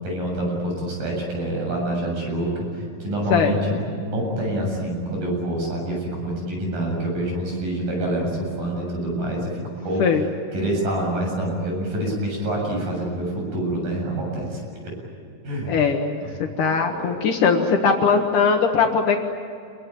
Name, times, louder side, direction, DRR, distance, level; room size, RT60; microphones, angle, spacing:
voice 1, 0.0-10.1 10.5-14.9 15.4-15.8 16.3-17.2, right 1 dB, 80° right, 0 dB, 9.5 m, -27 dB
voice 2, 15.7-19.2, left 5 dB, 70° left, 3 dB, 3.0 m, -20 dB
28.0 x 22.5 x 9.3 m, 2.5 s
omnidirectional pair, 3.9 m